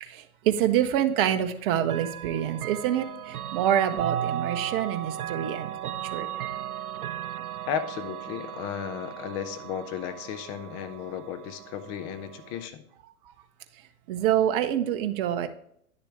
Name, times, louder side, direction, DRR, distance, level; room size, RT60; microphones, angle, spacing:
voice 1, 0.0-6.3 14.1-15.5, right 10 dB, 40° right, 8 dB, 0.9 m, -26 dB
Chime / Clock, 1.8-12.7, right 10 dB, 85° right, 0.6 m, -36 dB
voice 2, 7.7-12.8, left 9 dB, 20° left, 9 dB, 0.4 m, -34 dB
9.8 x 6.9 x 3.3 m, 0.66 s
hypercardioid pair, 115°, 43 cm